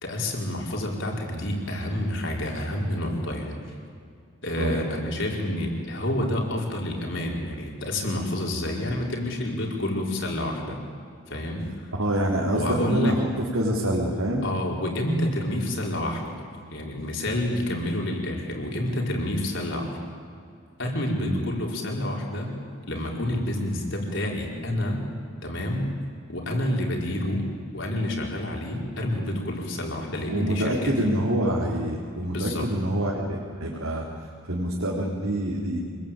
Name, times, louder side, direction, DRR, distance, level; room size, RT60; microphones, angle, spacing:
voice 1, 0.0-3.6 4.4-10.8 11.3-11.9 12.5-13.2 14.4-16.3 16.7-20.0 20.8-22.5 22.9-25.0 25.4-25.9 26.3-27.5 27.7-31.1 32.2-32.7, left 1 dB, 60° left, 0 dB, 4.9 m, -28 dB
voice 2, 12.0-14.4 21.2-21.4 30.3-35.8, right 1 dB, 80° right, -3 dB, 3.8 m, -26 dB
26.5 x 21.5 x 9.0 m, 2.3 s
head